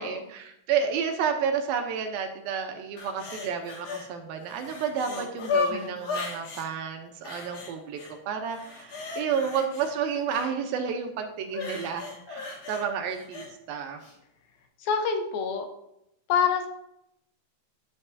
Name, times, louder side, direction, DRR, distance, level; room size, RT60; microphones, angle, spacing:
voice 1, 0.0-14.0, right 7 dB, 75° right, 5 dB, 2.5 m, -31 dB
sound 1, 3.0-4.1 4.4-6.7 7.2-8.1 8.5-10.5 11.5-13.5 14.0-14.1, left 5 dB, 50° left, 2.6 m, -35 dB
voice 2, 5.1-5.9 14.8-15.7 16.3-16.7, left 6 dB, 75° left, 5 dB, 2.5 m, -28 dB
11.0 x 7.6 x 2.7 m, 0.78 s
omnidirectional pair, 4.5 m